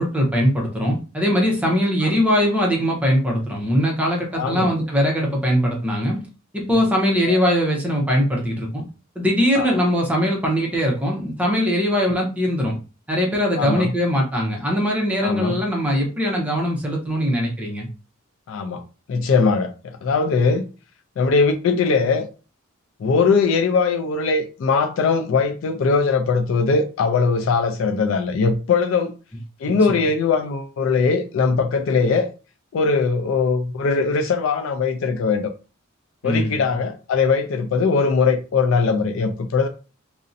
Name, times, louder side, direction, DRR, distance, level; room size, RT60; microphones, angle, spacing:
voice 1, 0.0-6.3 6.5-8.8 9.2-12.8 13.1-17.9 29.9-30.0 36.2-36.7, equal, 5° right, 0.6 m, -21 dB
voice 2, 4.3-4.8 7.3-7.4 9.6-9.8 13.6-13.9 15.2-15.6 18.5-18.8 19.1-20.6 21.2-22.3 23.0-29.1 29.6-32.3 32.7-35.5 36.2-39.7, left 4 dB, 65° left, 0.3 m, -20 dB
2.5 x 2.0 x 2.5 m
head